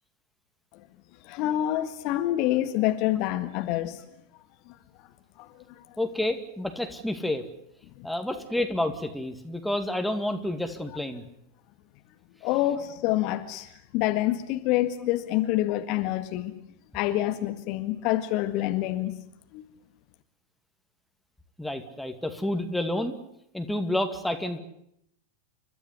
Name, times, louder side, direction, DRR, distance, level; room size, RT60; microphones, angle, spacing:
voice 1, 1.2-4.0 5.4-5.5 5.8-5.9 8.0-8.1 12.4-16.6 16.9-19.2 19.5-19.6, left 14 dB, 40° left, 8 dB, 1.7 m, -27 dB
voice 2, 6.0-7.5 8.0-11.2 21.6-23.2 23.5-24.6, left 1 dB, ahead, 6 dB, 2.3 m, -29 dB
30.0 x 13.5 x 9.7 m, 0.76 s
figure-of-eight pair, 90°, 0 cm